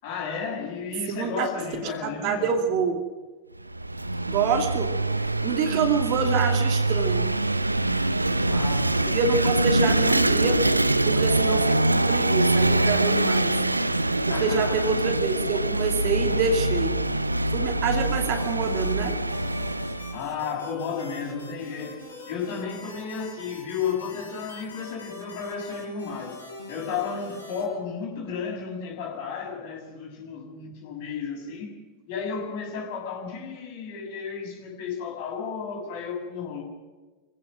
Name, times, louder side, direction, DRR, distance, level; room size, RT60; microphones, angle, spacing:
voice 1, 0.0-2.5 8.4-9.5 14.3-14.9 20.1-26.4 26.7-31.7 32.1-36.6, left 6 dB, 50° left, 1 dB, 6.5 m, -33 dB
voice 2, 1.1-1.5 2.0-3.0 4.3-4.9 5.4-7.3 9.1-10.7 11.0-13.5 14.3-17.0 17.5-19.2, right 5 dB, 45° right, 6 dB, 2.6 m, -26 dB
Vehicle / Engine, 3.6-20.2, right 2 dB, 85° right, 0.7 m, -24 dB
sound 1, 18.0-27.6, left 3 dB, 75° left, 6.8 m, -43 dB
25.5 x 16.5 x 6.2 m, 1.3 s
figure-of-eight pair, 90°, 0 cm